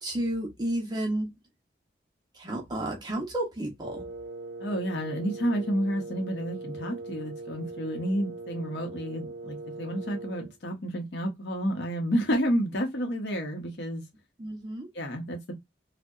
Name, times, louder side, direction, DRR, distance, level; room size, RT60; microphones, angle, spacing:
voice 1, 0.0-1.3 2.3-4.1 14.4-14.9, right 1 dB, 25° right, 0.5 m, -31 dB
Wind instrument woodwind instrument, 3.8-10.5, right 3 dB, 90° right, 0.4 m, -40 dB
voice 2, 4.6-14.1 14.9-15.5, equal, 65° left, 0.7 m, -30 dB
2.7 x 2.0 x 2.3 m
head